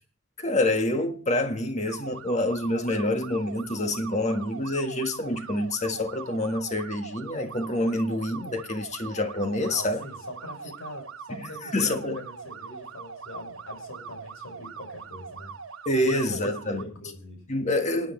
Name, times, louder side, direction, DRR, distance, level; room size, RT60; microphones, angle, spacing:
voice 1, 0.4-10.0 11.4-12.2 15.8-16.8 17.5-18.1, left 1 dB, 35° left, 1.6 m, -27 dB
sound 1, 1.9-16.8, right 5 dB, 70° right, 0.9 m, -42 dB
voice 2, 9.6-15.5 16.0-17.5, left 1 dB, 75° left, 5.7 m, -42 dB
26.0 x 9.3 x 3.2 m
head